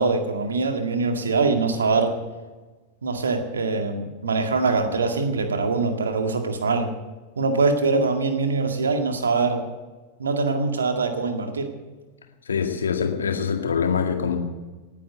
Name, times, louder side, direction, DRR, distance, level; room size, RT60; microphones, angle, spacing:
voice 1, 0.0-2.2 3.0-6.9 7.4-9.7 10.2-11.7, right 4 dB, 70° right, 6 dB, 1.9 m, -23 dB
voice 2, 12.5-14.4, left 6 dB, 70° left, 4 dB, 2.1 m, -24 dB
19.0 x 9.3 x 6.8 m, 1.3 s
figure-of-eight pair, 90°, 0 cm